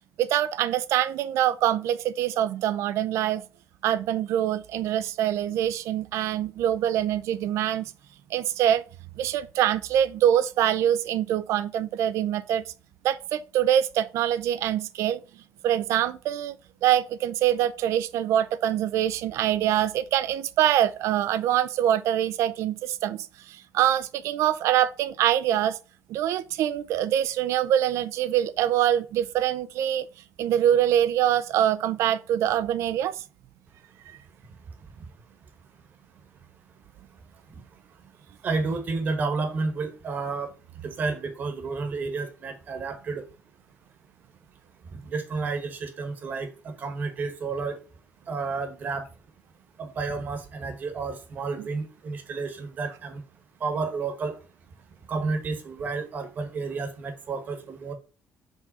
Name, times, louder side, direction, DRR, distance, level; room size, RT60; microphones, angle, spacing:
voice 1, 0.2-3.4 3.8-7.9 8.3-8.8 9.2-12.6 13.0-15.2 15.6-16.6 16.8-25.8 26.1-30.1 30.4-33.2, right 11 dB, 70° right, 0.5 m, -24 dB
voice 2, 38.4-40.5 40.8-43.2 44.9-47.8 48.3-49.1 49.8-53.2 53.6-54.4 55.1-57.9, right 4 dB, 35° right, 1.2 m, -31 dB
4.9 x 3.7 x 5.4 m
cardioid pair, 180°, 5 cm